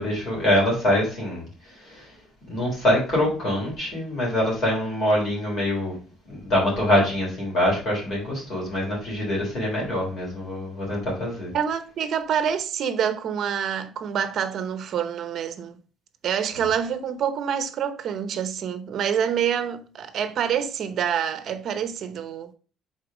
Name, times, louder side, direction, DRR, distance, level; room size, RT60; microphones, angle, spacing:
voice 1, 0.0-2.2 2.4-6.0 6.3-11.5 16.5-16.6, left 1 dB, 35° left, 3.6 m, -24 dB
voice 2, 11.5-15.8 16.2-22.5, right 8 dB, 45° right, 0.9 m, -27 dB
6.6 x 4.5 x 5.0 m
cardioid pair, 165°, 0 cm